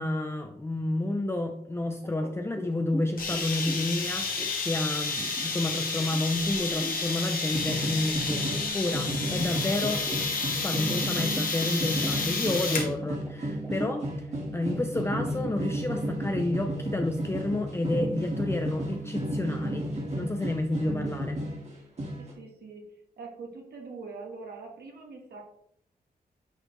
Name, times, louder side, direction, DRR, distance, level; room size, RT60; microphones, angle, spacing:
voice 1, 0.0-10.1 10.5-14.2 14.5-21.4, left 2 dB, 15° left, 4 dB, 0.5 m, -30 dB
sound 1, 2.0-7.2 7.6-7.9 8.3-9.1 9.7-16.4, equal, 5° right, 0.9 m, -42 dB
sound 2, 3.2-12.9, left 4 dB, 60° left, 1.7 m, -31 dB
sound 3, 7.4-21.7 22.0-22.3, right 1 dB, 45° right, 1.9 m, -33 dB
voice 2, 22.2-25.4, right 4 dB, 75° right, 1 dB, 1.5 m, -43 dB
7.9 x 4.1 x 3.1 m, 0.72 s
cardioid pair, 100°, 17 cm